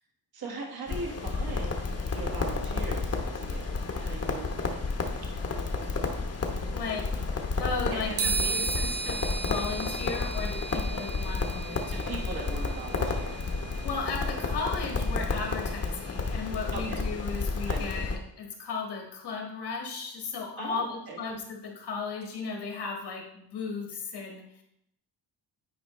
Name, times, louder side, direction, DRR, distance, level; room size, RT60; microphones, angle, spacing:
voice 1, 0.3-4.6 7.9-8.7 11.9-13.6 16.7-17.1 17.7-18.1 20.6-21.2, right 3 dB, 65° right, -1 dB, 1.6 m, -40 dB
Crackle, 0.9-18.2, left 3 dB, 40° left, 0.9 m, -31 dB
voice 2, 6.7-7.1 7.6-12.1 13.8-24.6, left 4 dB, 75° left, 1 dB, 1.7 m, -35 dB
sound 1, 8.2-15.8, right 4 dB, 80° right, 1.0 m, -36 dB
9.4 x 4.8 x 3.1 m, 0.76 s
wide cardioid pair, 135°, 40 cm